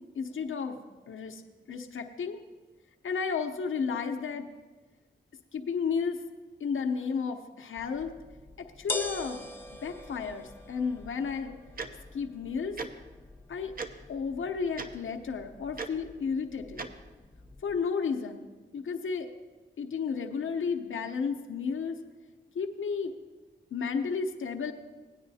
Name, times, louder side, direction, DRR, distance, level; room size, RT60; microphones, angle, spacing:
voice 1, 0.1-0.8 1.1-1.4 1.7-2.4 3.0-4.5 5.5-6.2 6.6-8.1 8.6-9.5 9.8-11.6 12.1-12.8 13.5-13.7 14.1-16.8 17.6-18.5 18.7-19.3 19.8-22.0 22.5-23.1 23.7-24.7, left 5 dB, 80° left, 4 dB, 0.8 m, -32 dB
sound 1, 7.8-17.8, left 2 dB, 10° left, 0.8 m, -44 dB
Tick-tock, 11.8-11.9 12.8-12.9 13.8-13.9 14.7-14.9 15.8-15.9 16.8-16.9, right 4 dB, 45° right, 0.7 m, -35 dB
17.5 x 9.6 x 2.8 m, 1.3 s
wide cardioid pair, 75°, 20 cm